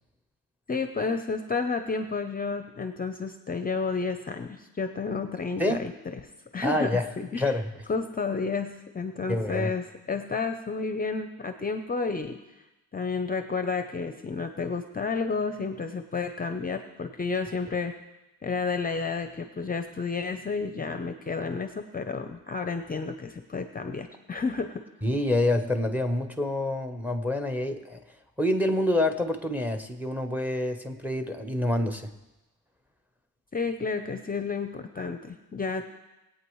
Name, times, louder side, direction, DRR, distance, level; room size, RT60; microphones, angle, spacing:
voice 1, 0.7-5.9 6.5-7.5 7.9-12.4 12.9-17.9 18.4-24.8 33.5-35.9, left 4 dB, 25° left, 7 dB, 0.6 m, -31 dB
voice 2, 6.6-7.1 7.4-7.7 9.3-9.7 25.0-28.0 28.4-32.1, left 1 dB, 5° right, 7 dB, 0.9 m, -27 dB
21.0 x 8.6 x 3.1 m, 1.0 s
cardioid pair, 130°, 33 cm